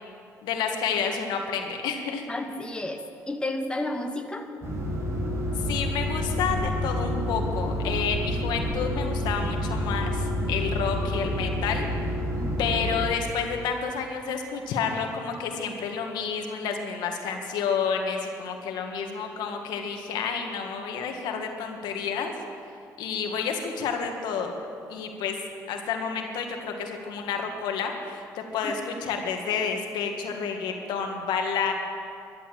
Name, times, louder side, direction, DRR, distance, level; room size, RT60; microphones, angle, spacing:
voice 1, 0.4-2.2 5.7-11.9 12.6-22.3 23.0-24.5 24.9-25.3 25.7-28.7 29.0-31.7, left 6 dB, 85° left, 3 dB, 1.7 m, -30 dB
voice 2, 2.3-4.5 12.4-12.7 28.6-28.7, left 1 dB, 15° left, 4 dB, 1.3 m, -32 dB
sound 1, 4.6-13.1, equal, 40° right, 4.7 m, -28 dB
13.5 x 11.0 x 7.7 m, 2.5 s
cardioid pair, 80°, 7 cm